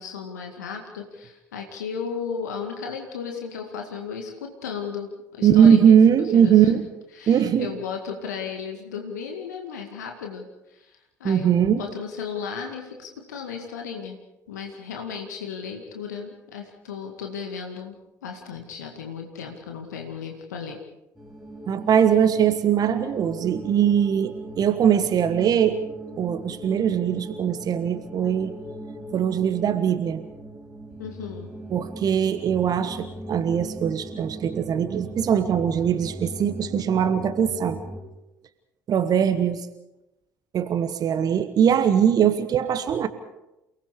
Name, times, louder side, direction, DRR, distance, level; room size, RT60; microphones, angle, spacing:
voice 1, 0.0-6.0 6.3-6.7 7.1-14.2 14.5-18.0 18.2-20.8 31.0-31.5, left 6 dB, 75° left, 3 dB, 2.1 m, -35 dB
voice 2, 5.4-6.9 7.3-7.7 11.2-11.8 21.7-25.8 26.2-28.5 29.1-30.2 31.7-37.8 38.9-39.7 40.5-43.1, right 8 dB, 45° right, 11 dB, 1.2 m, -21 dB
sound 1, 21.1-38.0, right 1 dB, 5° right, 5.8 m, -39 dB
29.0 x 19.5 x 5.0 m, 0.95 s
figure-of-eight pair, 55°, 9 cm